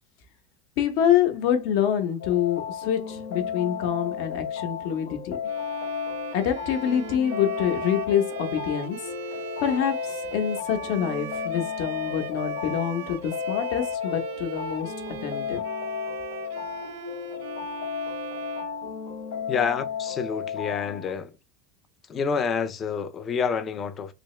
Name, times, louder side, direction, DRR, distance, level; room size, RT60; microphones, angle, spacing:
voice 1, 0.8-5.4 6.3-9.0 9.6-14.9 15.2-15.6, left 9 dB, 60° left, 0.9 m, -26 dB
sound 1, 2.2-21.1, left 8 dB, 90° left, 0.9 m, -34 dB
Bowed string instrument, 5.4-19.5, right 10 dB, 75° right, 0.4 m, -39 dB
voice 2, 19.5-21.3 22.1-24.1, left 6 dB, 25° left, 0.4 m, -28 dB
3.4 x 2.8 x 3.2 m
supercardioid pair, 150°, 0 cm